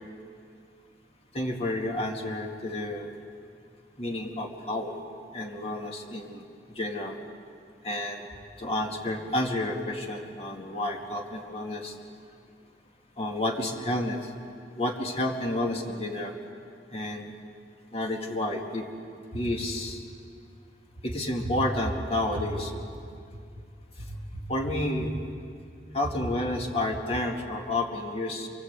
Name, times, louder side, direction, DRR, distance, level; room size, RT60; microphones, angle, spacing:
voice 1, 1.3-3.1 4.0-4.9 5.3-6.4 6.7-7.2 7.8-8.3 8.6-11.9 13.2-14.3 14.8-16.3 16.9-17.3 17.9-18.9 19.3-20.0 21.0-22.9 24.1-24.2 24.5-25.1 25.9-28.5, left 1 dB, 35° left, 1 dB, 2.4 m, -30 dB
28.5 x 23.5 x 8.3 m, 2.3 s
head